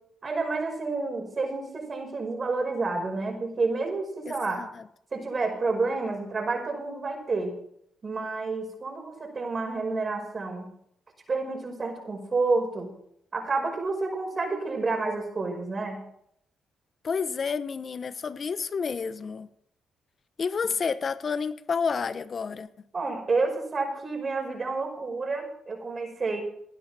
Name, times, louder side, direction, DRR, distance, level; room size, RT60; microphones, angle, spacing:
voice 1, 0.2-4.6 5.1-7.6 8.0-10.7 11.3-12.9 13.3-16.0 22.9-26.4, right 3 dB, 40° right, 5.5 m, -29 dB
voice 2, 4.3-4.9 17.0-19.5 20.4-22.7, left 5 dB, 50° left, 1.0 m, -30 dB
18.0 x 11.5 x 4.3 m
supercardioid pair, 55°, 0 cm